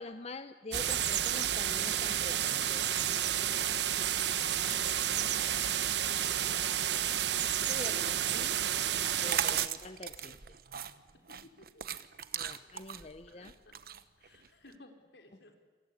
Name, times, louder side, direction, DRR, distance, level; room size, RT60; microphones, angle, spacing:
voice 1, 0.0-2.8 7.7-8.6 9.2-10.4 12.3-13.5, left 2 dB, 35° left, 10 dB, 0.8 m, -45 dB
sound 1, 0.7-9.7, right 10 dB, 75° right, 1.0 m, -31 dB
sound 2, 9.1-14.7, right 9 dB, 55° right, 1.0 m, -38 dB
voice 2, 11.4-11.8 12.3-13.7 14.2-15.6, left 2 dB, 80° left, 5 dB, 4.4 m, -59 dB
28.0 x 21.5 x 10.0 m, 1.5 s
head